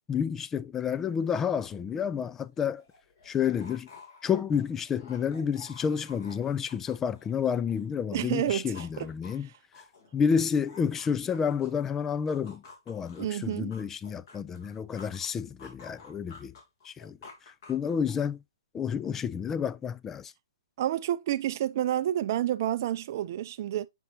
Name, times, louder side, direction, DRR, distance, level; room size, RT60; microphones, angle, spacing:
voice 1, 0.1-2.8 3.2-3.9 4.2-9.5 10.1-16.5 16.8-17.2 17.7-18.4 18.7-20.3, left 7 dB, 15° left, 0.3 m, -30 dB
sound 1, 2.2-2.3 2.5-8.0 8.3-11.8 12.3-15.3 15.6-18.3, left 4 dB, 50° left, 2.7 m, -52 dB
voice 2, 8.1-9.1 13.2-13.7 20.8-23.9, right 12 dB, 45° right, 0.5 m, -29 dB
7.3 x 5.4 x 2.7 m
hypercardioid pair, 140°, 2 cm